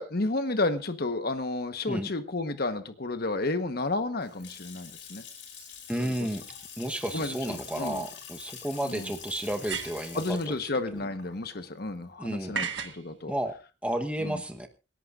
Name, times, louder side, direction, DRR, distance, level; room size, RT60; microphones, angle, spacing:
voice 1, 0.0-5.2 6.0-6.1 7.1-8.1 8.8-9.1 10.1-13.3 14.2-14.4, left 2 dB, 55° left, 9 dB, 1.2 m, -31 dB
Water tap faucet / Sink (filling or washing) / Splash splatter, 4.0-12.8, left 7 dB, 70° left, 6.4 m, -46 dB
voice 2, 5.9-6.4 6.8-10.5 11.0-11.1 12.2-12.6 13.3-13.5 13.8-14.7, right 1 dB, 5° right, 4 dB, 1.1 m, -32 dB
sound 1, 7.6-7.7 9.5-10.2 12.5-13.0, right 5 dB, 70° right, 1.4 m, -34 dB
26.5 x 11.5 x 2.5 m, 0.31 s
head